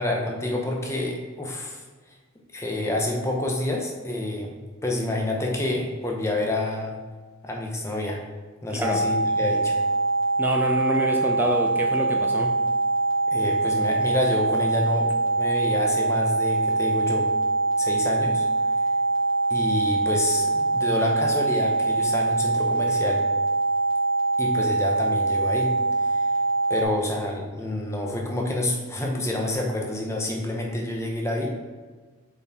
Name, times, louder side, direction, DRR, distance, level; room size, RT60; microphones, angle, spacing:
voice 1, 0.0-1.8 2.5-6.9 7.4-8.2 8.6-9.7 13.3-17.3 17.8-18.4 19.5-23.2 24.4-25.7 26.0-26.2 26.7-31.5, left 1 dB, 15° left, 0 dB, 0.8 m, -28 dB
sound 1, 8.8-26.8, right 3 dB, 75° right, 2.2 m, -23 dB
voice 2, 10.4-12.5, equal, 10° right, 2 dB, 0.4 m, -26 dB
7.0 x 4.3 x 4.3 m, 1.4 s
head